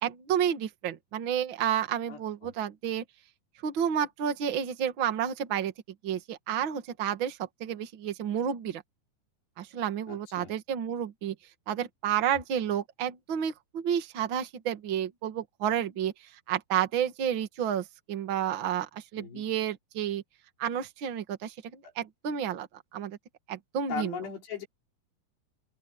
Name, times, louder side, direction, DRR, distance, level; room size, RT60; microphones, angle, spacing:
voice 1, 0.0-3.0 3.6-5.7 6.0-8.8 9.6-11.3 11.7-16.1 16.5-20.2 20.6-22.7 22.9-23.2 23.5-24.2, right 9 dB, 45° right, 1.7 m, -30 dB
voice 2, 2.1-2.5 10.1-10.5 19.2-19.4 23.9-24.7, left 7 dB, 85° left, 6.2 m, -38 dB
open air
omnidirectional pair, 4.7 m